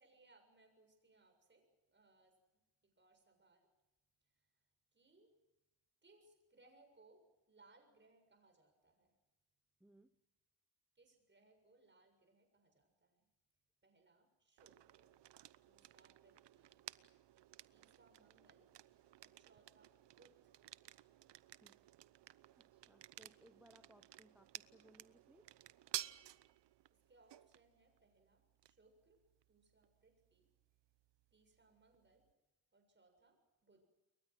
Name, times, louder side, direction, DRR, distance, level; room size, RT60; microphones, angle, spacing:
voice 1, 0.0-3.7 4.2-4.5 4.9-5.4 6.0-9.1 11.0-13.3 13.8-15.2 15.6-16.8 17.7-18.7 19.2-20.5 26.9-30.5 31.3-32.3 32.7-33.9, right 3 dB, 20° right, 4 dB, 7.2 m, -70 dB
voice 2, 9.8-10.1 21.6-21.8 22.6-25.6, right 1 dB, 5° right, 10 dB, 0.9 m, -66 dB
sound 1, 14.6-32.3, right 13 dB, 60° right, 0.9 m, -55 dB
29.5 x 22.5 x 6.2 m, 0.99 s
cardioid pair, 130°, 49 cm